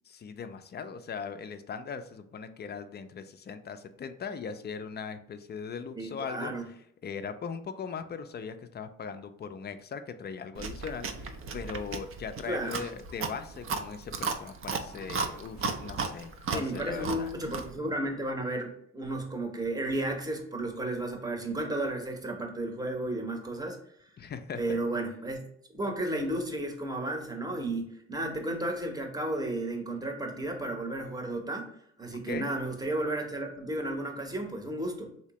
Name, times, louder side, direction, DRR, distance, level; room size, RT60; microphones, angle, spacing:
voice 1, 0.1-6.7 7.0-17.3 24.2-24.8 32.3-32.5, left 6 dB, 30° left, 9 dB, 0.4 m, -39 dB
voice 2, 6.0-6.6 12.4-12.8 16.5-24.1 24.6-25.4 25.7-35.1, right 1 dB, 10° right, 3 dB, 0.8 m, -33 dB
Chewing mastication, 10.6-17.8, right 5 dB, 40° right, 0.5 m, -35 dB
3.2 x 2.8 x 2.9 m, 0.68 s
supercardioid pair, 70°, 34 cm